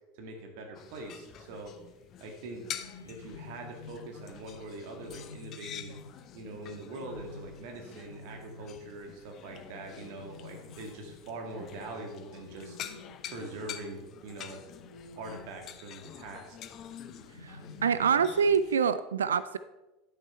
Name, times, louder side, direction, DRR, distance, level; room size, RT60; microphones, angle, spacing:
voice 1, 0.1-1.7 2.2-2.6 3.0-6.0 6.3-12.8 13.3-14.7 15.1-16.6, right 2 dB, 60° right, 3 dB, 2.0 m, -43 dB
sound 1, 0.7-18.8, left 10 dB, 45° left, 0.7 m, -47 dB
sound 2, 2.4-14.0 14.8-16.1 17.1-18.6, left 3 dB, 90° left, 0.6 m, -51 dB
voice 2, 17.4-19.6, right 6 dB, 80° right, 14 dB, 0.3 m, -26 dB
11.0 x 6.4 x 4.4 m, 1.0 s
figure-of-eight pair, 80°, 0 cm